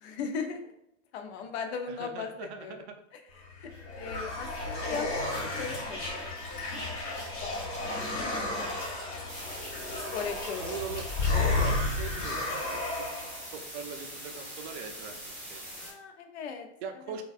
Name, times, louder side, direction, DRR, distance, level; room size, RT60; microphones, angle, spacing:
voice 1, 0.0-0.7 1.1-2.8 3.1-6.6 7.1-8.8 10.1-10.6 15.7-16.7 17.1-17.2, left 5 dB, 60° left, 6 dB, 0.5 m, -39 dB
voice 2, 1.9-3.0 10.6-11.0 11.3-13.3 13.5-15.7 16.8-17.2, right 6 dB, 60° right, 5 dB, 0.5 m, -41 dB
sound 1, 3.4-13.4, left 2 dB, 40° left, 1.2 m, -32 dB
sound 2, 9.3-15.9, right 1 dB, 5° left, 0.4 m, -43 dB
2.6 x 2.3 x 2.3 m, 0.78 s
supercardioid pair, 155°, 37 cm